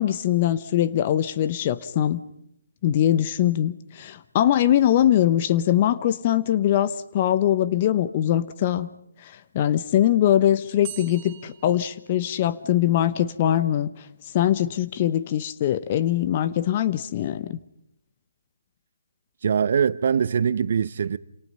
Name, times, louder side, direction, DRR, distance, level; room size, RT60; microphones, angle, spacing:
voice 1, 0.0-2.2 2.8-8.9 9.2-13.9 14.3-17.6, left 11 dB, 30° left, 1.0 m, -22 dB
sound 1, 10.8-12.8, right 12 dB, 20° right, 4.5 m, -43 dB
voice 2, 19.4-21.2, right 7 dB, 50° right, 0.9 m, -22 dB
28.5 x 28.0 x 5.6 m
figure-of-eight pair, 145°, 0 cm